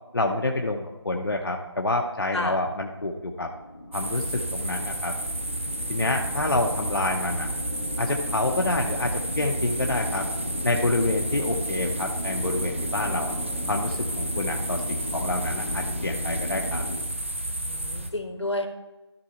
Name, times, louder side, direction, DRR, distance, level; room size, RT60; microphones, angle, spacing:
voice 1, 0.1-3.5 3.9-5.1 5.9-7.5 8.0-10.3 10.6-13.3 13.7-16.8, left 2 dB, 55° left, 2 dB, 0.8 m, -27 dB
sound 1, 3.2-17.0, left 1 dB, 20° left, 0.8 m, -36 dB
sound 2, 3.9-18.1, right 1 dB, 25° right, 0.6 m, -31 dB
voice 2, 17.7-18.7, left 1 dB, 75° left, 6 dB, 1.3 m, -32 dB
13.5 x 4.7 x 4.3 m, 1.1 s
figure-of-eight pair, 175°, 15 cm